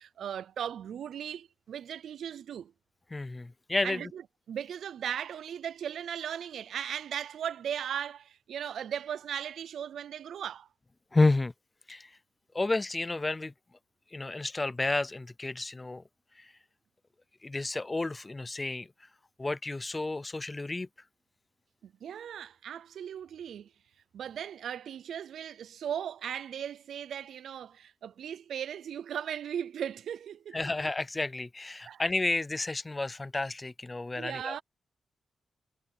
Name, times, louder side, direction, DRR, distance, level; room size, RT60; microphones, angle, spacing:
voice 1, 0.0-2.7 3.8-4.2 4.5-10.7 21.8-23.7 24.1-30.6 31.9-32.0 34.1-34.6, right 9 dB, 80° right, 0.5 m, -37 dB
voice 2, 3.1-4.1 11.1-11.5 11.9-12.1 12.5-13.5 14.1-16.0 16.4-16.5 17.4-18.9 19.4-20.9 30.5-34.6, left 2 dB, 15° left, 0.5 m, -31 dB
wide cardioid pair, 170°, 0 cm